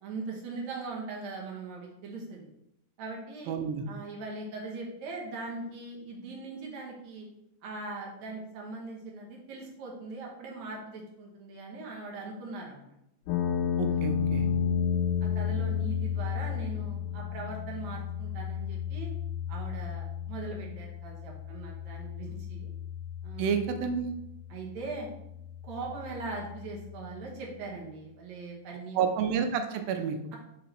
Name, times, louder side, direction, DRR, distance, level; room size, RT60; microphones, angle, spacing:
voice 1, 0.0-2.5 3.0-3.6 3.9-7.3 7.6-12.9 13.9-14.0 14.3-14.8 15.2-19.1 19.5-22.7 23.2-23.6 24.5-25.1 25.6-29.0, right 3 dB, 65° right, -1 dB, 2.0 m, -40 dB
voice 2, 3.5-3.8 13.8-14.5 23.4-24.1 29.0-30.2, right 7 dB, 85° right, 6 dB, 2.4 m, -29 dB
sound 1, 13.3-27.3, left 8 dB, 75° left, 2.1 m, -33 dB
5.5 x 4.2 x 4.2 m, 0.82 s
omnidirectional pair, 4.1 m